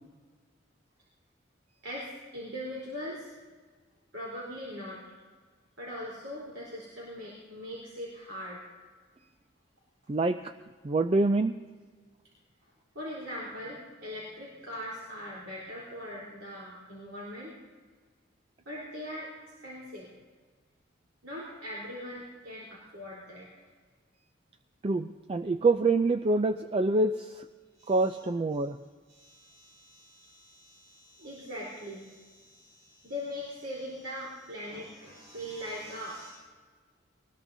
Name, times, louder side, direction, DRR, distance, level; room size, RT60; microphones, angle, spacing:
voice 1, 1.8-3.3 4.1-5.0 5.8-8.7 12.9-17.5 18.7-19.3 19.6-20.1 21.2-23.5 27.8-28.2 29.1-36.3, equal, 75° right, -5 dB, 3.9 m, -41 dB
voice 2, 10.1-10.5 10.8-11.5 24.8-27.5 27.9-28.8, right 2 dB, 30° right, 9 dB, 0.4 m, -26 dB
23.0 x 19.5 x 2.7 m, 1.5 s
head